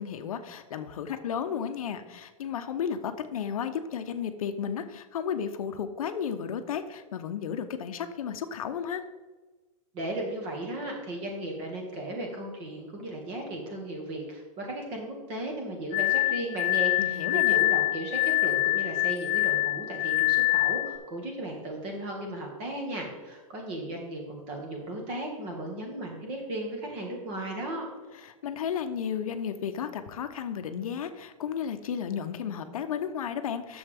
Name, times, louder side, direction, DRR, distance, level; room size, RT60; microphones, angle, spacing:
voice 1, 0.0-9.0 17.0-17.6 28.2-33.8, left 7 dB, 75° left, 9 dB, 0.8 m, -33 dB
voice 2, 9.9-27.9, right 1 dB, 30° right, 1 dB, 2.0 m, -36 dB
Glass, 15.9-21.0, left 21 dB, 20° left, 0.5 m, -25 dB
9.8 x 7.1 x 3.5 m, 1.2 s
supercardioid pair, 165°, 18 cm